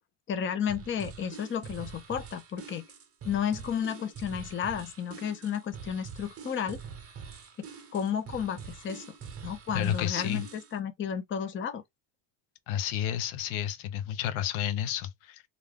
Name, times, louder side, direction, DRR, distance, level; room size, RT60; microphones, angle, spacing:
voice 1, 0.3-2.8 3.2-6.8 7.6-7.7 7.9-9.0 9.4-11.8, left 8 dB, 25° left, 0.6 m, -32 dB
sound 1, 0.7-10.8, right 6 dB, 30° right, 0.8 m, -45 dB
voice 2, 9.7-10.5 12.7-15.4, left 10 dB, 75° left, 0.7 m, -31 dB
2.5 x 2.2 x 3.4 m
cardioid pair, 110°, 49 cm